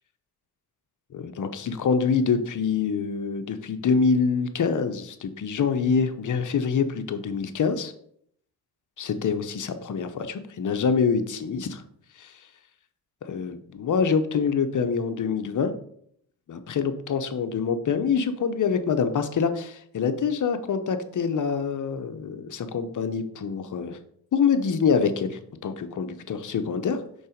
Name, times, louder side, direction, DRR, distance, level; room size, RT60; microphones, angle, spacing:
voice 1, 1.1-7.9 9.0-11.8 12.2-12.3 13.3-15.7 16.5-24.0 24.3-27.0, left 6 dB, 50° left, 8 dB, 0.8 m, -25 dB
5.3 x 4.0 x 5.1 m, 0.68 s
cardioid pair, 65°, 39 cm